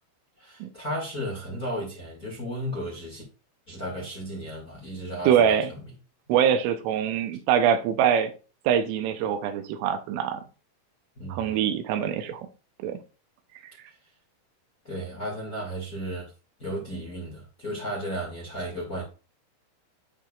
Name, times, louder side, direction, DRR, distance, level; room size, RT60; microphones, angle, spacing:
voice 1, 0.4-3.2 3.7-5.8 11.2-11.5 14.8-16.3 16.6-19.0, equal, 40° left, 1.2 m, -34 dB
voice 2, 5.3-5.7 6.3-8.3 8.7-10.4 11.3-12.5 12.8-13.0, right 8 dB, 85° right, 3.3 m, -23 dB
12.0 x 4.6 x 2.4 m
omnidirectional pair, 5.6 m